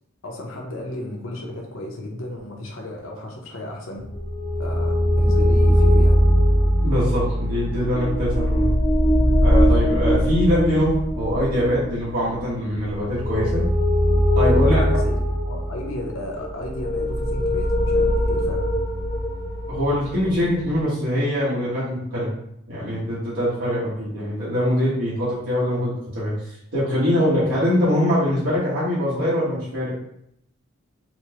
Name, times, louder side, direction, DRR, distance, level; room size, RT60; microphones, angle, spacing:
voice 1, 0.2-4.0 4.6-6.2 14.5-15.1 15.4-18.6, left 1 dB, 90° left, 1 dB, 0.8 m, -34 dB
sound 1, 4.1-20.8, equal, 20° left, 0.4 m, -21 dB
voice 2, 6.8-8.7 9.4-13.6 14.3-14.8 19.7-22.3 22.7-26.3 26.7-29.9, equal, 90° right, -10 dB, 1.2 m, -23 dB
4.2 x 2.1 x 2.8 m, 0.73 s
head